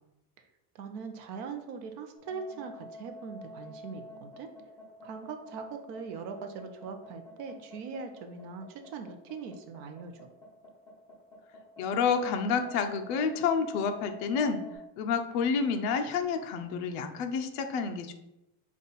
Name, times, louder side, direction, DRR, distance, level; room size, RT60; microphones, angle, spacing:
voice 1, 0.7-4.5 5.0-10.3, right 5 dB, 45° right, 6 dB, 0.6 m, -41 dB
sound 1, 2.2-14.8, left 2 dB, 10° left, 0.8 m, -48 dB
voice 2, 11.8-14.6 15.0-18.1, left 5 dB, 45° left, 6 dB, 0.5 m, -29 dB
5.4 x 2.4 x 4.0 m, 0.91 s
cardioid pair, 175°, 47 cm